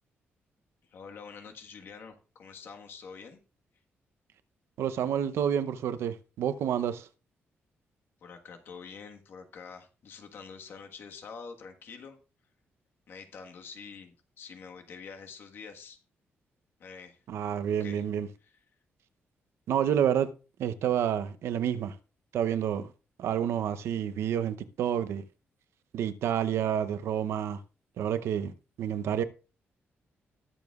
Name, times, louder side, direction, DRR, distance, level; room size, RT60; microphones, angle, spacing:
voice 1, 0.9-3.4 8.2-12.2 13.1-16.0 16.8-17.2 17.8-18.0 18.4-18.5, left 5 dB, 60° left, 1.5 m, -46 dB
voice 2, 4.8-7.1 17.3-18.3 19.7-20.3 20.6-21.9 22.3-22.9 23.2-25.2 25.9-27.6 28.0-28.5 28.8-29.2, right 9 dB, 85° right, 0.7 m, -29 dB
20.0 x 7.0 x 2.4 m
wide cardioid pair, 155°, 4 cm